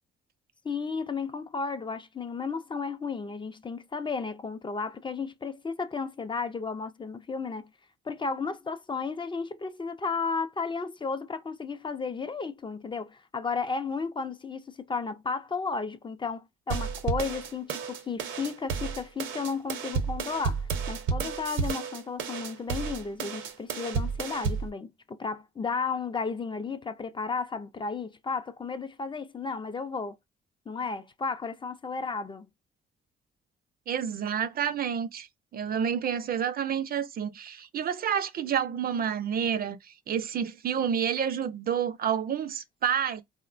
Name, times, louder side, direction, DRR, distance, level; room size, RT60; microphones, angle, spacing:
voice 1, 0.6-7.7 8.1-30.1 30.7-32.5, left 4 dB, 25° left, 0.4 m, -33 dB
sound 1, 16.7-24.7, right 6 dB, 80° right, 0.7 m, -32 dB
voice 2, 33.9-43.2, right 8 dB, 50° right, 0.5 m, -29 dB
3.5 x 2.1 x 2.5 m
cardioid pair, 90°, 20 cm